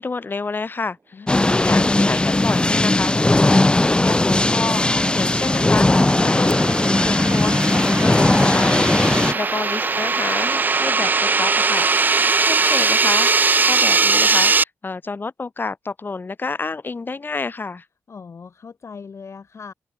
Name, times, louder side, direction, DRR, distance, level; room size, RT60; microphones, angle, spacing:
voice 1, 0.0-3.6 4.0-4.9 5.1-5.9 6.2-6.6 7.0-8.7 9.3-11.9 12.4-17.8, left 4 dB, 40° left, 1.5 m, -29 dB
voice 2, 1.1-1.6 18.1-19.7, left 5 dB, 60° left, 6.4 m, -40 dB
sound 1, 1.3-9.3, left 2 dB, 20° left, 0.7 m, -18 dB
sound 2, 4.2-14.6, right 4 dB, 35° right, 0.4 m, -21 dB
open air
cardioid pair, 70°, 5 cm